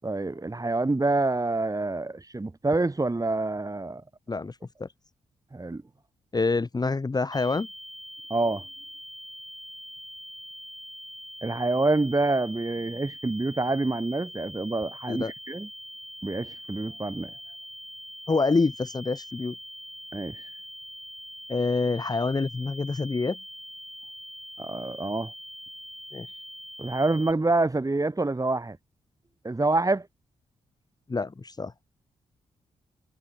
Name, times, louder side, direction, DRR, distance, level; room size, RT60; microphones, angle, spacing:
voice 1, 0.0-4.0 5.5-5.8 8.3-8.7 11.4-15.7 16.2-17.3 20.1-20.4 24.6-25.3 26.8-28.8 29.4-30.1, right 2 dB, 25° right, 5.0 m, -27 dB
voice 2, 4.3-4.9 6.3-7.7 15.1-15.3 18.3-19.5 21.5-23.4 26.1-26.3 31.1-31.7, left 3 dB, 30° left, 1.2 m, -27 dB
sound 1, 7.3-27.3, equal, ahead, 4.2 m, -43 dB
supercardioid pair, 45°, 13 cm